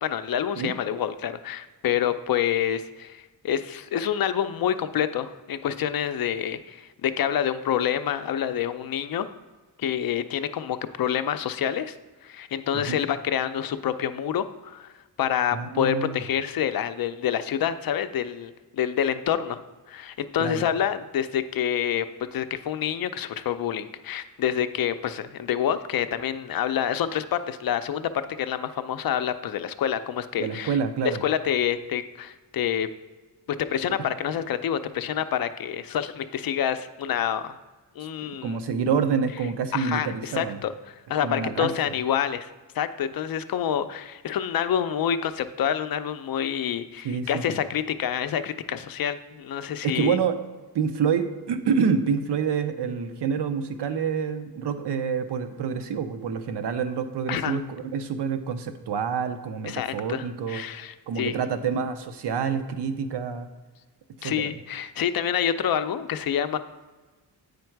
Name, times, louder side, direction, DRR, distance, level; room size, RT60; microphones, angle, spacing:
voice 1, 0.0-9.3 9.8-12.0 12.2-14.9 15.2-19.6 19.9-30.7 31.0-32.9 33.6-37.6 38.0-38.6 39.7-50.2 57.3-57.6 59.7-61.3 64.2-66.6, left 9 dB, 55° left, 11 dB, 0.5 m, -27 dB
voice 2, 15.5-16.2 20.4-20.7 30.4-31.2 34.0-34.1 38.4-40.6 41.2-41.7 47.0-47.6 49.8-50.4 50.7-60.6 61.1-63.5 64.2-64.3, right 6 dB, 70° right, 9 dB, 0.7 m, -27 dB
8.6 x 5.2 x 4.6 m, 1.3 s
wide cardioid pair, 160°, 43 cm